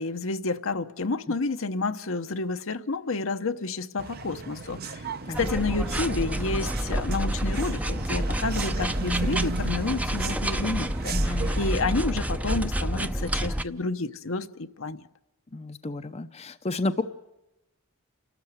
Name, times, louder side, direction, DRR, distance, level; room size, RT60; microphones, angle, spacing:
voice 1, 0.0-5.1 5.4-15.0, left 3 dB, 65° left, 0.9 m, -30 dB
sound 1, 4.0-11.8, right 4 dB, 45° right, 0.9 m, -36 dB
sound 2, 5.3-13.6, right 1 dB, 5° right, 0.7 m, -28 dB
voice 2, 11.1-11.5 15.5-17.0, left 2 dB, 30° left, 0.7 m, -31 dB
29.0 x 13.0 x 8.0 m
head